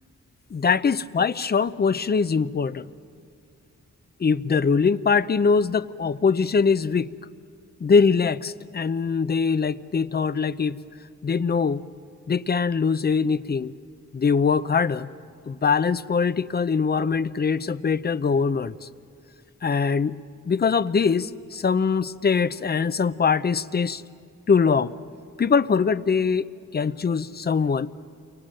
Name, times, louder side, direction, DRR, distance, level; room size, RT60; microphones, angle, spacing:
voice 1, 0.5-2.9 4.2-7.1 7.8-10.8 11.2-11.8 12.3-13.7 14.1-15.1 15.5-18.7 19.6-20.2 20.5-24.0 24.5-24.9 25.4-26.5 26.7-27.9, left 5 dB, 30° left, 14 dB, 0.6 m, -22 dB
30.0 x 24.0 x 7.7 m, 2.3 s
wide cardioid pair, 105°, 30 cm